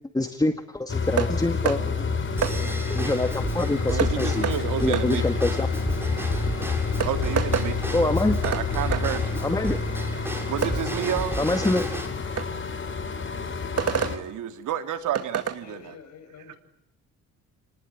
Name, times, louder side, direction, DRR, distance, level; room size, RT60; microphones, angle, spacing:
voice 1, 0.1-2.1 2.9-4.5 4.8-5.7 7.9-8.4 9.4-9.8 11.4-11.9, left 2 dB, 10° left, 8 dB, 2.1 m, -25 dB
sound 1, 0.9-14.2, left 4 dB, 40° left, 5.2 m, -28 dB
sound 2, 1.2-1.3 1.7-1.8 2.4-2.6 4.0-4.1 4.4-4.6 4.9-5.1 6.4-6.5 7.0-7.7 8.4-8.7 8.9-9.0 10.6-10.8 12.4-12.5 13.8-14.2 15.1-15.6, right 7 dB, 55° right, 2.5 m, -26 dB
Drum kit / Drum / Bell, 2.4-12.1, right 1 dB, 10° right, 6.5 m, -34 dB
voice 2, 3.9-5.2 7.0-8.2 8.4-9.6 10.5-11.4 14.0-15.9 16.5-16.6, right 10 dB, 80° right, 7 dB, 3.2 m, -30 dB
voice 3, 15.6-16.5, left 5 dB, 65° left, 7 dB, 7.0 m, -47 dB
29.0 x 20.0 x 10.0 m, 0.81 s
cardioid pair, 90°, 30 cm